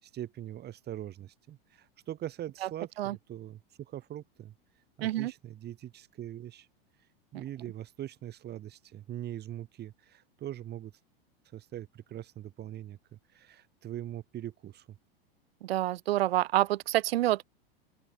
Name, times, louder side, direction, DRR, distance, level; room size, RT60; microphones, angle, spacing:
voice 1, 0.0-4.5 5.0-6.7 7.3-10.9 11.5-15.0, right 12 dB, 35° right, 5.0 m, -42 dB
voice 2, 5.0-5.3 15.6-17.4, right 15 dB, 80° right, 0.8 m, -27 dB
open air
hypercardioid pair, 120°, 30 cm